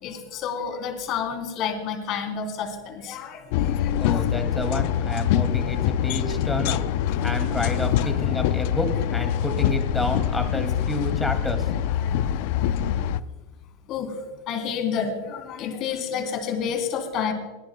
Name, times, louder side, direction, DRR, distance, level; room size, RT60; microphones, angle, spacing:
voice 1, 0.0-4.2 7.1-7.2 8.0-8.3 11.9-13.1 13.9-14.2 14.5-17.3, left 7 dB, 45° left, 4 dB, 3.3 m, -30 dB
sound 1, 3.5-13.2, left 10 dB, 65° left, 0.5 m, -24 dB
voice 2, 4.0-6.8 7.2-12.0, left 1 dB, 10° left, 5 dB, 2.3 m, -30 dB
29.5 x 10.5 x 2.3 m, 1.2 s
hypercardioid pair, 115°, 0 cm